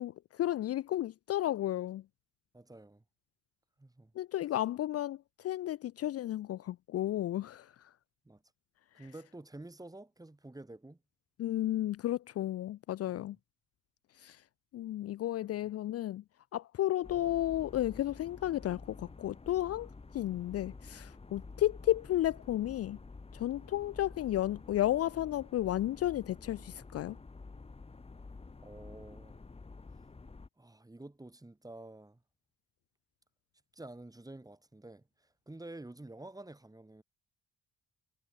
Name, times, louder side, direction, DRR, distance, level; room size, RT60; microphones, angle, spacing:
voice 1, 0.0-2.0 4.2-7.7 11.4-13.4 14.2-14.4 14.7-16.2 16.5-23.0 23.3-27.2, left 13 dB, 55° left, 0.5 m, -33 dB
voice 2, 2.5-3.0 3.8-4.1 8.2-8.4 8.9-11.0 28.6-29.4 30.6-32.2 33.7-37.0, right 2 dB, 10° right, 5.9 m, -49 dB
sound 1, 17.0-30.5, left 3 dB, 20° left, 1.5 m, -50 dB
cardioid pair, 90°, 30 cm